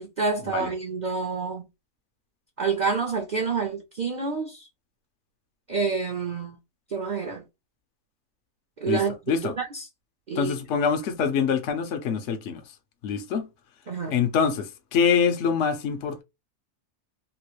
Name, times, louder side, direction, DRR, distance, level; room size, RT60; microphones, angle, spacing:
voice 1, 0.0-1.6 2.6-4.7 5.7-6.6 6.9-7.4 8.8-9.8 10.3-10.6 13.9-14.1, right 5 dB, 45° right, 0.6 m, -28 dB
voice 2, 8.9-9.5 10.4-12.7 13.0-13.5 14.1-16.2, left 6 dB, 60° left, 0.9 m, -25 dB
3.1 x 2.5 x 3.0 m
omnidirectional pair, 1.6 m